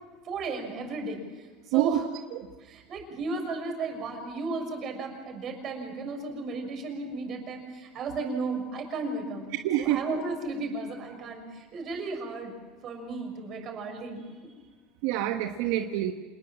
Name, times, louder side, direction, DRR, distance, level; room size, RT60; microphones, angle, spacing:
voice 1, 0.2-2.0 2.6-9.5 9.8-12.5 12.8-14.5, right 3 dB, 40° right, 4 dB, 6.3 m, -34 dB
voice 2, 9.6-10.0 15.0-16.1, right 13 dB, 75° right, 5 dB, 1.3 m, -26 dB
27.0 x 20.0 x 7.5 m, 1.4 s
supercardioid pair, 135°, 0 cm